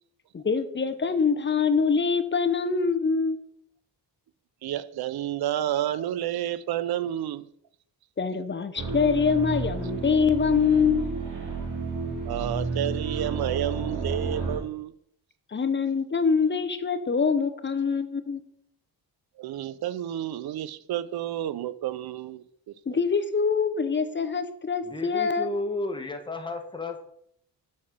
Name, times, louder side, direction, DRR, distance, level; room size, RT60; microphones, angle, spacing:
voice 1, 0.3-3.4 8.2-11.1 15.5-18.4 22.9-25.5, left 5 dB, 25° left, 0.7 m, -24 dB
voice 2, 4.6-7.5 12.2-14.9 19.4-22.4 22.9-23.0, right 12 dB, 65° right, 0.6 m, -30 dB
sound 1, 8.8-14.6, right 4 dB, 45° right, 1.7 m, -31 dB
voice 3, 24.9-27.0, left 2 dB, 10° left, 1.2 m, -32 dB
7.3 x 4.2 x 6.0 m
cardioid pair, 100°, 41 cm